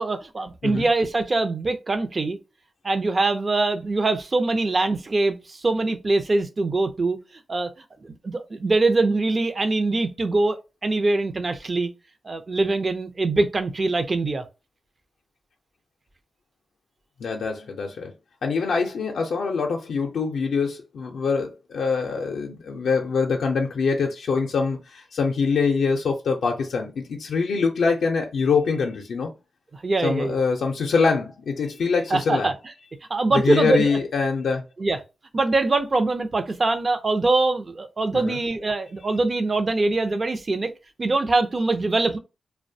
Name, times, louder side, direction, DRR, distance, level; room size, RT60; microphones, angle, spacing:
voice 1, 0.0-2.4 2.8-7.2 7.5-7.7 8.0-10.6 10.8-11.9 12.2-14.4 29.8-30.4 32.1-32.5 33.1-34.0 34.8-35.0 35.3-40.7 41.0-42.2, right 3 dB, 40° right, 0.5 m, -23 dB
voice 2, 17.2-18.1 18.4-29.3 30.0-32.5 33.3-34.6 38.1-38.4, left 5 dB, 80° left, 0.4 m, -24 dB
2.4 x 2.1 x 2.6 m
cardioid pair, 70°, 0 cm